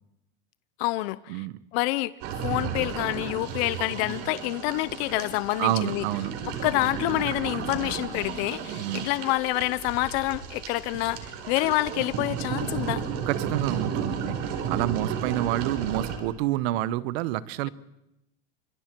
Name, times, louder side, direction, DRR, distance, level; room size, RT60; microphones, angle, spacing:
voice 1, 0.8-1.5 1.7-2.1 2.4-6.1 6.5-13.0, left 19 dB, 75° left, 16 dB, 0.8 m, -27 dB
sound 1, 2.2-16.2, right 7 dB, 65° right, 4.4 m, -33 dB
voice 2, 5.6-6.3 8.8-9.1 13.3-14.4 14.7-17.7, right 14 dB, 85° right, 18 dB, 1.0 m, -28 dB
27.5 x 25.5 x 4.6 m, 0.87 s
cardioid pair, 145°, 31 cm